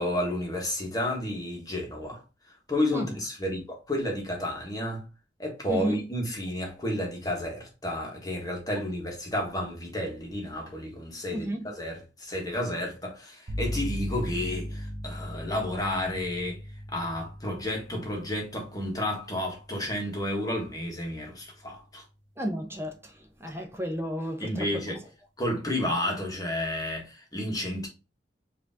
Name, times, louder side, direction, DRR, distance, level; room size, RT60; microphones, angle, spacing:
voice 1, 0.0-2.2 2.7-5.1 5.4-16.6 16.9-22.0 24.4-25.0 25.4-27.9, left 1 dB, 20° left, 1.4 m, -31 dB
voice 2, 11.3-11.6 22.4-23.1 23.4-24.7, equal, 15° right, 0.8 m, -32 dB
sound 1, 13.5-21.2, left 1 dB, 90° right, 1.0 m, -38 dB
4.9 x 2.8 x 3.5 m
head